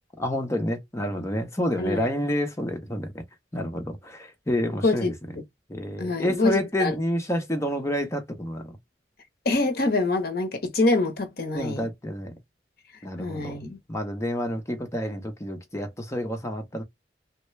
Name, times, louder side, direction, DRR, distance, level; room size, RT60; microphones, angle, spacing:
voice 1, 0.2-3.1 3.5-5.1 5.7-8.8 11.5-12.3 13.0-13.6 13.9-16.8, equal, 15° left, 0.7 m, -29 dB
voice 2, 4.7-5.1 6.0-6.9 9.5-11.9 13.2-13.8, left 2 dB, 55° left, 0.8 m, -25 dB
3.2 x 2.2 x 3.0 m
head